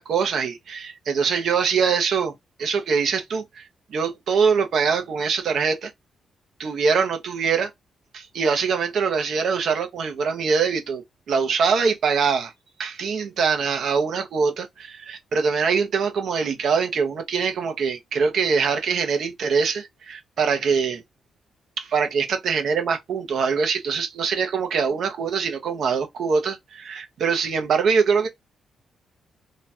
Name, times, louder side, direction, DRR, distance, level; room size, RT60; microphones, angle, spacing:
voice 1, 0.0-2.3 2.6-3.6 3.9-5.9 6.6-7.7 8.1-12.5 12.8-21.0 21.8-28.3, right 5 dB, 65° right, 1.0 m, -23 dB
3.1 x 2.4 x 4.2 m
cardioid pair, 110°, 0 cm